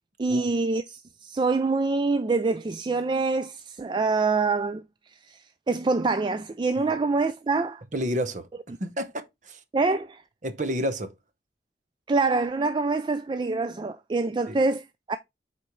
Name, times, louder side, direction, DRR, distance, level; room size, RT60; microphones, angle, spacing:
voice 1, 0.2-7.8 9.7-10.2 12.1-15.2, right 3 dB, 25° right, 0.3 m, -26 dB
voice 2, 7.9-8.5 8.8-9.6 10.4-11.1 14.5-14.6, equal, 45° right, 0.9 m, -30 dB
8.0 x 4.3 x 3.1 m
head